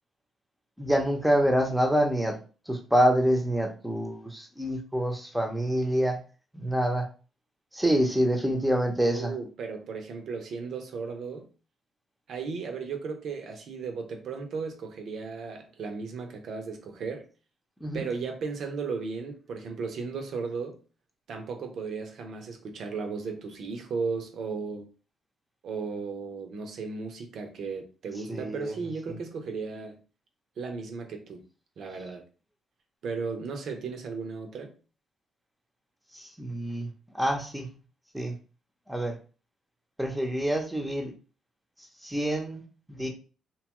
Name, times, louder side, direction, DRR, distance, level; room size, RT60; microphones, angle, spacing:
voice 1, 0.8-2.4 2.7-6.2 6.5-7.1 7.7-9.3 17.8-18.0 28.3-28.7 36.1-36.9 37.1-37.7 38.1-38.4 38.9-39.2 40.0-41.1 42.0-43.1, equal, 5° right, 0.7 m, -26 dB
voice 2, 9.0-11.5 12.3-17.3 17.9-20.8 21.3-24.9 25.6-30.0 30.6-31.4 31.8-32.2 33.0-34.7, right 4 dB, 65° right, 0.6 m, -35 dB
2.8 x 2.3 x 2.9 m
cardioid pair, 90°, 0 cm